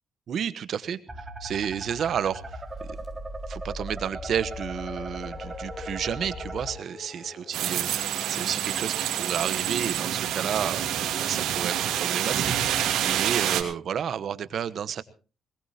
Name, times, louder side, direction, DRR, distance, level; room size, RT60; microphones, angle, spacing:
voice 1, 0.3-3.0 3.5-15.0, right 8 dB, 60° right, 13 dB, 1.1 m, -31 dB
sound 1, 1.1-6.7, right 1 dB, 20° right, 2.7 m, -38 dB
sound 2, 1.8-8.4, left 3 dB, 40° left, 5.7 m, -46 dB
sound 3, 7.5-13.6, right 10 dB, 90° right, 2.8 m, -27 dB
21.0 x 20.0 x 2.9 m, 0.35 s
cardioid pair, 90°, 0 cm